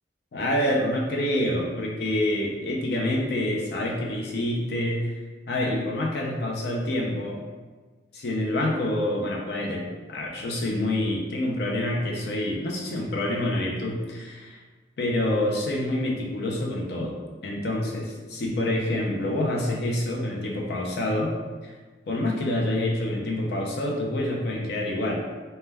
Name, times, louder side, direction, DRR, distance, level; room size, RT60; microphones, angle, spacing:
voice 1, 0.3-5.2 5.5-7.4 8.1-9.8 10.1-14.6 15.0-17.2 17.4-21.3 21.6-21.7 22.1-25.2, left 1 dB, 60° left, -1 dB, 0.4 m, -27 dB
2.2 x 2.1 x 3.3 m, 1.4 s
head